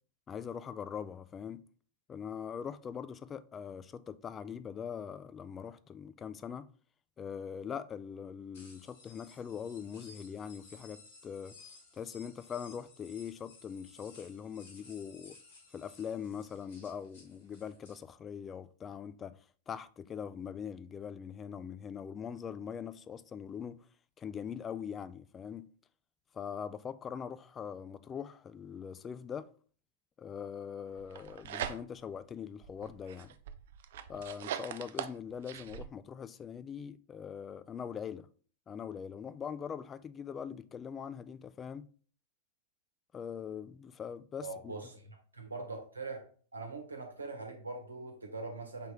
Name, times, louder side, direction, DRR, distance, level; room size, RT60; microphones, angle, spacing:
voice 1, 0.3-1.6 2.1-6.7 7.2-11.6 11.9-15.4 15.7-23.9 24.2-25.7 26.3-29.5 30.2-33.3 34.1-38.3 38.7-41.9 43.1-44.8, left 7 dB, 25° left, 0.3 m, -42 dB
sound 1, 8.5-18.0, left 3 dB, 65° left, 2.0 m, -57 dB
sound 2, 31.0-32.2 32.6-35.9, right 10 dB, 60° right, 0.3 m, -41 dB
voice 2, 44.4-46.2 46.5-48.9, right 3 dB, 85° right, 1.1 m, -42 dB
4.9 x 3.3 x 3.0 m
figure-of-eight pair, 95°, 0 cm